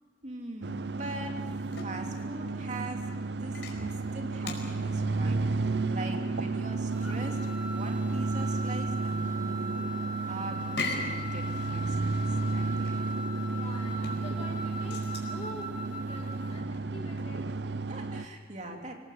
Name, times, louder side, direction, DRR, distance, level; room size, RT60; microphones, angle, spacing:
voice 1, 0.2-1.4 1.8-9.9 10.3-13.0 17.9-19.0, right 2 dB, 40° right, 2 dB, 2.9 m, -42 dB
sound 1, 0.6-18.3, right 3 dB, 70° right, 0.6 m, -32 dB
sound 2, 0.9-17.4, left 3 dB, 85° left, 4.8 m, -43 dB
sound 3, 6.9-16.5, equal, 5° right, 5.4 m, -40 dB
voice 2, 12.1-12.7 13.5-17.9, left 1 dB, 35° left, 1 dB, 2.1 m, -47 dB
25.5 x 18.0 x 7.9 m, 1.5 s
head